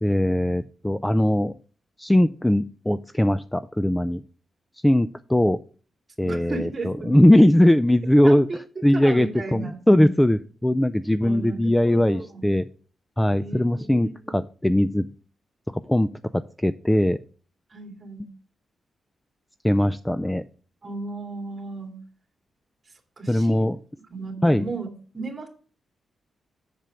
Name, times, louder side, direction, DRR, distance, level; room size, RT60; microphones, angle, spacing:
voice 1, 0.0-1.5 2.0-4.2 4.8-5.6 6.2-8.5 8.8-12.7 13.2-15.1 15.7-17.2 19.6-20.4 23.3-23.8 24.4-24.7, left 1 dB, 5° left, 13 dB, 0.3 m, -20 dB
voice 2, 6.2-7.2 8.2-8.6 8.9-9.8 11.2-12.5 13.3-14.4 17.7-18.3 20.8-22.0 23.2-23.7 24.1-24.9 25.1-25.5, right 3 dB, 30° right, 2 dB, 2.3 m, -35 dB
7.5 x 6.8 x 5.0 m, 0.41 s
wide cardioid pair, 125°, 0 cm